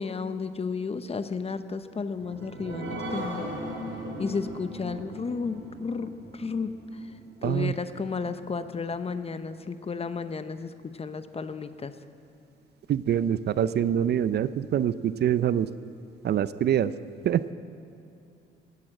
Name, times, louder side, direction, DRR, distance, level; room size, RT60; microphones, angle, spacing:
voice 1, 0.0-3.5 4.2-7.1 7.4-11.9, left 5 dB, 30° left, 11 dB, 0.7 m, -33 dB
sound 1, 2.0-9.1 9.5-9.6 10.0-10.1, right 1 dB, 75° right, 3.5 m, -39 dB
voice 2, 7.4-7.7 12.9-15.7 16.2-16.9 17.2-17.4, right 10 dB, 55° right, 15 dB, 0.5 m, -25 dB
17.0 x 11.0 x 7.5 m, 2.6 s
cardioid pair, 90°, 20 cm